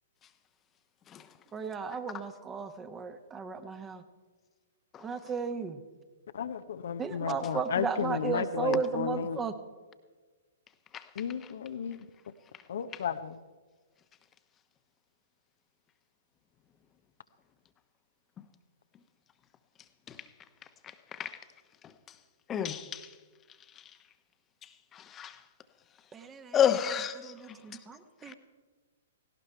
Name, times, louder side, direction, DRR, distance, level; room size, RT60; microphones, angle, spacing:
voice 1, 1.5-4.0 5.0-5.8 7.0-9.5 26.1-26.6 27.2-28.3, right 5 dB, 15° right, 9 dB, 1.2 m, -35 dB
voice 2, 6.3-9.4 11.2-12.0 12.7-13.4, left 7 dB, 60° left, 10 dB, 0.8 m, -33 dB
voice 3, 22.5-23.1 24.9-25.4 26.5-27.3, left 9 dB, 20° left, 10 dB, 1.0 m, -29 dB
17.5 x 17.5 x 4.5 m, 1.4 s
figure-of-eight pair, 115°, 0 cm